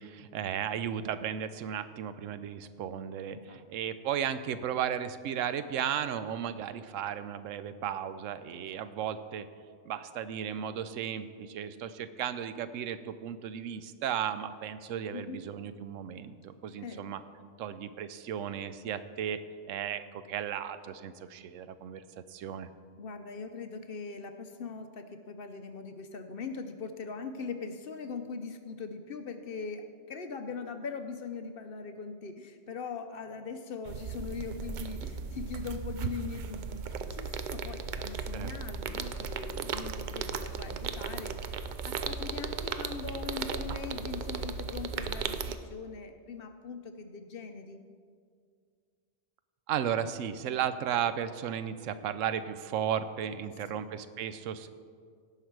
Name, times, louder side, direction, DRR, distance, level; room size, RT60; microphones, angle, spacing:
voice 1, 0.0-9.5 9.8-17.2 17.6-19.4 19.7-22.0 22.3-22.7 38.3-38.5 49.7-54.7, right 9 dB, 90° right, 12 dB, 1.0 m, -35 dB
voice 2, 3.3-3.6 8.5-8.7 15.1-15.4 16.8-17.1 23.0-47.8 53.4-53.8, left 5 dB, 55° left, 7 dB, 0.8 m, -41 dB
sound 1, 33.9-45.6, right 6 dB, 60° right, 0.5 m, -36 dB
17.0 x 5.8 x 4.7 m, 2.1 s
omnidirectional pair, 1.3 m